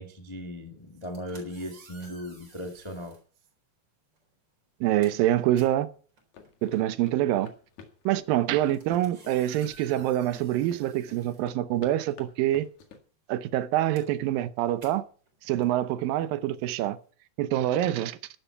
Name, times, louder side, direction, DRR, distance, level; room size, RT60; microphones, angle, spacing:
voice 1, 0.0-3.2, equal, 25° left, 0.5 m, -38 dB
sound 1, 0.9-3.3 4.1-4.3 4.7-12.2 12.5-17.1, right 2 dB, 30° right, 4.6 m, -55 dB
voice 2, 4.8-5.9 6.6-7.5 8.1-12.7 13.3-15.0 15.4-17.0 17.4-18.2, right 13 dB, 85° right, 2.5 m, -26 dB
sound 2, 6.3-13.0, left 6 dB, 60° left, 3.1 m, -50 dB
12.5 x 11.5 x 5.7 m
omnidirectional pair, 4.0 m